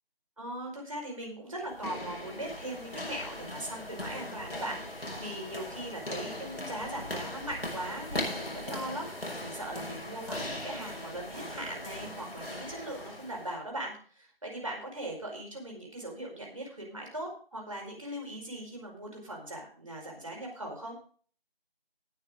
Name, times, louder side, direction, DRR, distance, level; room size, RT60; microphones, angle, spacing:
voice 1, 0.4-20.9, right 1 dB, 35° right, -1 dB, 4.9 m, -40 dB
sound 1, 1.6-13.6, left 1 dB, 80° left, 5.9 m, -39 dB
19.0 x 6.7 x 3.7 m, 0.44 s
figure-of-eight pair, 175°, 30 cm